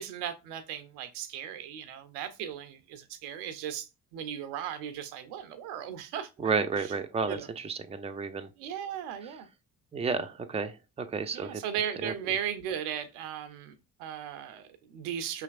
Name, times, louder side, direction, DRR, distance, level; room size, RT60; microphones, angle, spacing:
voice 1, 0.0-6.3 6.8-6.9 7.3-7.5 8.6-9.5 11.3-13.7 14.0-15.4, right 9 dB, 75° right, 0.7 m, -37 dB
voice 2, 6.4-8.5 9.9-11.6 12.0-12.1, right 5 dB, 15° right, 0.6 m, -31 dB
5.6 x 3.2 x 2.4 m
figure-of-eight pair, 45°, 47 cm